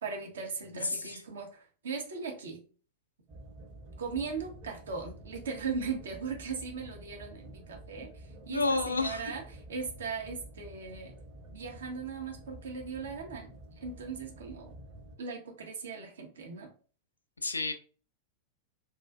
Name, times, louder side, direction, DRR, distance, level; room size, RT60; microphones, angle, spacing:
voice 1, 0.0-2.6 4.0-9.4 9.7-11.1 11.5-14.7 15.2-16.7, right 5 dB, 65° right, 2 dB, 0.6 m, -38 dB
voice 2, 0.7-1.2 8.5-9.2 17.4-17.7, left 3 dB, 80° left, 7 dB, 0.3 m, -30 dB
sound 1, 3.3-15.2, right 1 dB, 30° right, 0.8 m, -50 dB
2.4 x 2.3 x 2.2 m, 0.39 s
figure-of-eight pair, 90°, 0 cm